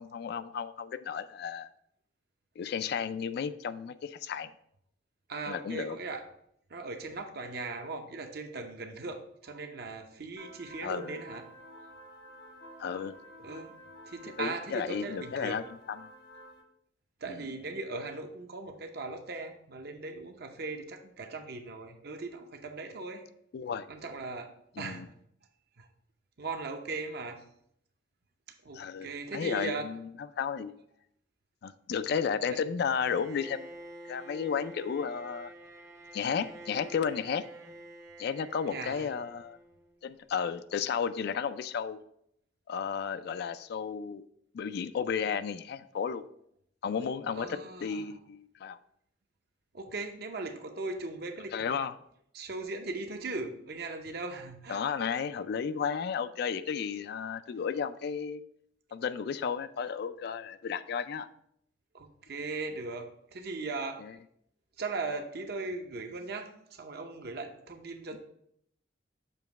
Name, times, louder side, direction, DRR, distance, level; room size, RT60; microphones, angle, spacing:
voice 1, 0.0-1.7 2.6-4.5 5.5-6.0 10.8-11.2 12.8-13.1 14.4-15.6 15.9-16.0 17.3-17.5 23.5-23.9 24.8-25.1 28.7-30.0 30.4-30.7 31.6-33.7 34.1-35.5 36.1-37.4 38.2-39.6 40.0-42.0 42.7-44.2 44.5-46.2 46.8-48.8 51.5-52.0 54.7-58.4 58.9-61.3 64.0-64.1, left 6 dB, 55° left, 12 dB, 0.3 m, -33 dB
voice 2, 5.3-6.3 6.7-12.5 13.4-13.7 14.1-15.6 17.2-23.2 23.9-25.1 25.8-25.9 26.4-27.4 28.6-29.9 32.5-32.6 38.7-39.1 47.4-48.1 49.7-51.7 52.3-54.8 61.9-64.0 64.8-68.2, right 3 dB, 55° right, 5 dB, 0.7 m, -39 dB
sound 1, 10.4-16.6, equal, 75° left, 1.3 m, -51 dB
Bowed string instrument, 33.0-40.0, right 1 dB, 15° right, 0.5 m, -49 dB
6.9 x 3.0 x 4.6 m, 0.71 s
head